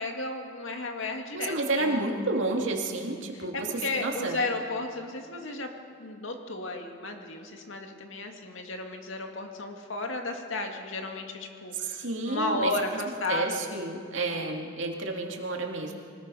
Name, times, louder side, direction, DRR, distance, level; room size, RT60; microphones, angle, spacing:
voice 1, 0.0-2.0 3.3-5.7 6.0-14.0, left 2 dB, 85° left, 4 dB, 2.0 m, -34 dB
voice 2, 1.3-3.7 4.0-4.4 11.9-12.7 13.3-16.0, right 2 dB, 75° right, 1 dB, 2.4 m, -30 dB
24.0 x 19.5 x 5.6 m, 2.2 s
head